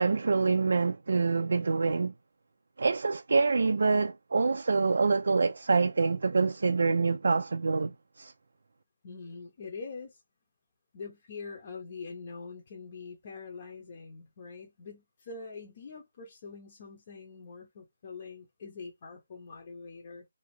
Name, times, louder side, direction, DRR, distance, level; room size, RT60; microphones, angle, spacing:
voice 1, 0.0-2.1 2.8-8.3, right 4 dB, 70° right, 0.3 m, -26 dB
voice 2, 9.0-10.2 10.9-20.2, left 4 dB, 40° left, 0.7 m, -44 dB
2.6 x 2.3 x 3.1 m
hypercardioid pair, 165°, 0 cm